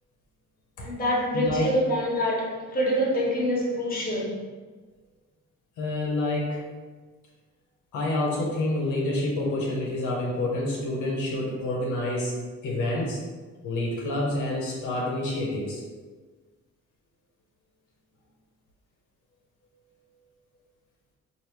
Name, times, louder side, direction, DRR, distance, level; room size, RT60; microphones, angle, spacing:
voice 1, 0.8-4.4, equal, 30° left, -4 dB, 1.3 m, -26 dB
voice 2, 1.3-1.7 5.8-6.6 7.9-12.4 12.6-13.2 13.6-15.8, left 1 dB, 80° left, -3 dB, 1.0 m, -28 dB
3.3 x 2.7 x 4.5 m, 1.4 s
cardioid pair, 90°, 30 cm